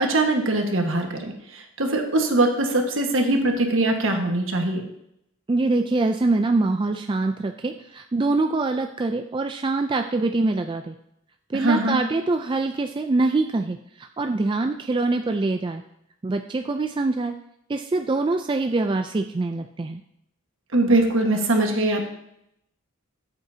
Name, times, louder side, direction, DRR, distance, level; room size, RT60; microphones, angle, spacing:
voice 1, 0.0-4.8 11.5-12.0 20.7-22.1, right 2 dB, 60° right, 3 dB, 1.5 m, -22 dB
voice 2, 5.5-11.0 11.5-15.8 16.2-17.4 17.7-20.0, right 3 dB, 20° right, 6 dB, 0.3 m, -24 dB
14.0 x 8.0 x 2.8 m, 0.78 s
head